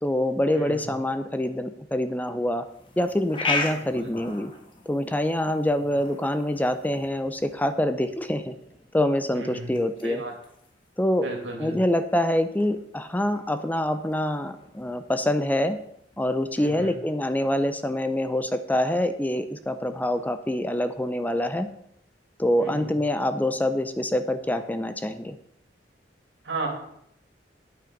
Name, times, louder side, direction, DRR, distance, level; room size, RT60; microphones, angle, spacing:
voice 1, 0.0-2.6 3.0-4.5 4.9-8.5 8.9-10.2 11.0-11.3 11.6-15.8 16.2-21.7 22.4-25.4, left 1 dB, 10° left, 10 dB, 0.5 m, -25 dB
sound 1, 2.6-16.7, left 3 dB, 30° left, 1.6 m, -38 dB
voice 2, 3.7-4.1 9.3-9.7 10.0-10.3 11.2-11.8 16.6-16.9 22.6-22.9 26.4-26.7, right 2 dB, 80° right, 2 dB, 2.8 m, -35 dB
9.0 x 8.7 x 5.2 m, 0.73 s
head